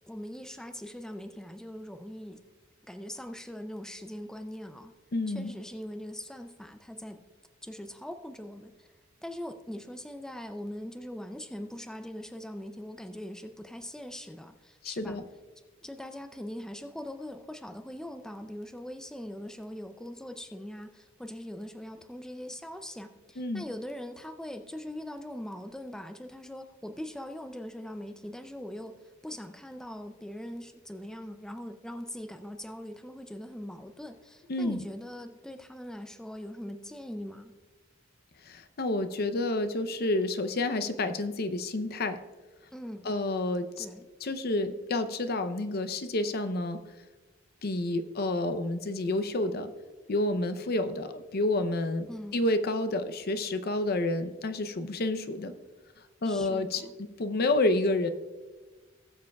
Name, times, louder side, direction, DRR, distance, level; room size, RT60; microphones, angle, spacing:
voice 1, 0.1-2.4 2.9-4.9 5.3-7.2 7.6-8.9 9.2-15.2 15.6-37.5 42.7-43.1 43.8-44.0 52.1-52.4 56.2-56.9, left 1 dB, 5° left, 7 dB, 0.4 m, -41 dB
voice 2, 5.1-5.5 14.8-15.2 23.4-23.7 34.5-34.8 38.4-42.2 43.0-43.9 44.2-46.8 47.6-49.7 50.1-52.1 52.3-55.5 56.2-56.9 57.2-58.1, left 2 dB, 50° left, 11 dB, 0.6 m, -29 dB
19.0 x 7.5 x 2.3 m, 1.3 s
head